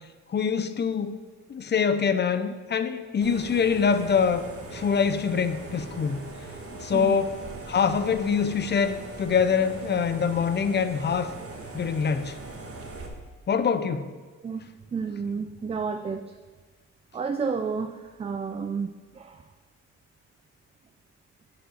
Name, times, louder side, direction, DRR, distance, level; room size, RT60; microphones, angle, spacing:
voice 1, 0.3-1.2 1.5-4.4 4.7-6.2 6.8-7.4 7.7-11.3 11.7-12.4 13.5-14.1, left 6 dB, 35° left, 11 dB, 0.5 m, -24 dB
sound 1, 3.2-13.1, right 2 dB, 50° right, 1.3 m, -41 dB
voice 2, 14.4-16.3 17.1-19.5, right 5 dB, 20° right, 7 dB, 0.3 m, -31 dB
6.3 x 4.9 x 6.4 m, 1.4 s
cardioid pair, 90°, 30 cm